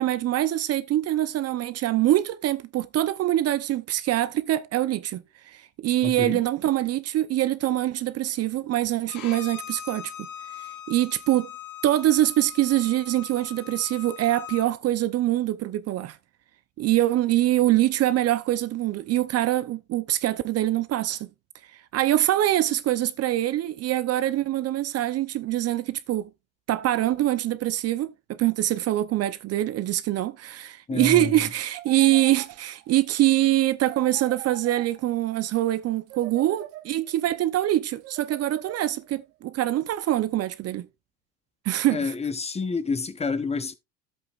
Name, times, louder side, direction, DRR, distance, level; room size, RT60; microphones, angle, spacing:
voice 1, 0.0-10.3 10.6-11.5 11.8-16.2 16.8-21.3 21.7-26.3 26.7-40.9 41.6-42.1, right 14 dB, 40° right, 0.7 m, -24 dB
voice 2, 6.0-6.4 30.9-31.3 41.9-43.7, left 4 dB, 15° left, 0.8 m, -28 dB
Bowed string instrument, 9.1-14.7, left 9 dB, 55° left, 2.7 m, -41 dB
sound 1, 31.7-33.0 33.9-35.4 36.1-37.3 38.0-39.2, right 15 dB, 70° right, 1.6 m, -43 dB
12.0 x 8.0 x 2.4 m
supercardioid pair, 105°, 40 cm